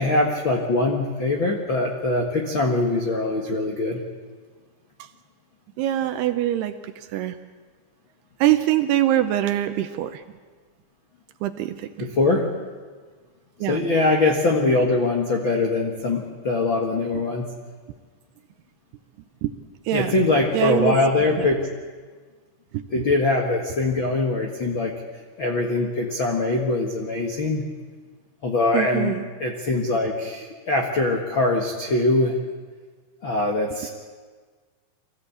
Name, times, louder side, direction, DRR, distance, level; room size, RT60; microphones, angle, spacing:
voice 1, 0.0-4.0 12.0-12.4 13.7-17.4 19.9-21.6 22.9-24.9 25.4-27.6 28.4-29.1 29.4-32.3 33.2-33.9, left 2 dB, 65° left, 1 dB, 1.2 m, -22 dB
voice 2, 5.8-7.4 8.4-10.2 11.4-12.1 13.6-13.8 17.1-17.2 19.4-19.5 19.9-20.2 20.5-21.0 21.4-21.5 22.7-23.0 28.7-29.3, right 13 dB, 80° right, 9 dB, 2.6 m, -24 dB
24.5 x 16.0 x 8.5 m, 1.5 s
omnidirectional pair, 5.1 m